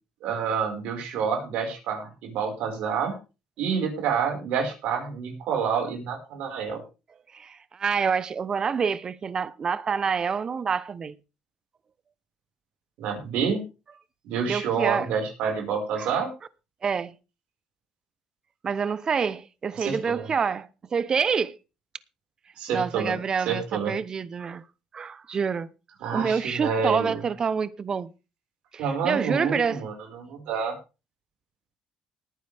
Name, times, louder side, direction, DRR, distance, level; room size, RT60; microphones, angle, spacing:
voice 1, 0.2-3.1 3.6-6.8 13.0-13.6 14.3-16.3 19.8-20.3 22.6-23.1 23.5-23.9 26.0-27.2 28.8-30.7, right 6 dB, 75° right, 5.2 m, -28 dB
voice 2, 7.3-11.2 14.4-15.1 16.0-16.1 16.8-17.1 18.6-21.6 22.7-24.6 24.9-25.7 26.1-28.1 28.7-29.8, right 6 dB, 35° right, 0.9 m, -27 dB
19.0 x 9.5 x 3.5 m
cardioid pair, 110°, 2 cm